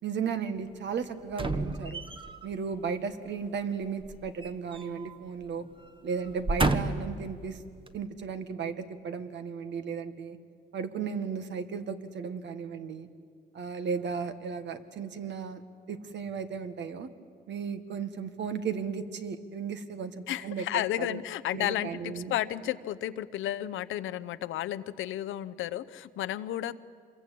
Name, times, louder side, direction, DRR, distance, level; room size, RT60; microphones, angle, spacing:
voice 1, 0.0-2.0 2.4-5.7 6.0-7.6 7.9-10.4 10.7-13.1 13.5-15.6 15.9-17.1 17.5-21.2 21.5-22.3, right 6 dB, 65° right, 9 dB, 1.7 m, -35 dB
sound 1, 1.3-2.5 4.0-5.2 5.5-5.7 6.2-7.2 7.9-8.0, right 2 dB, 25° right, 1.3 m, -31 dB
voice 2, 20.3-26.7, left 13 dB, 80° left, 13 dB, 0.8 m, -32 dB
26.5 x 22.0 x 8.5 m, 2.3 s
cardioid pair, 90°, 20 cm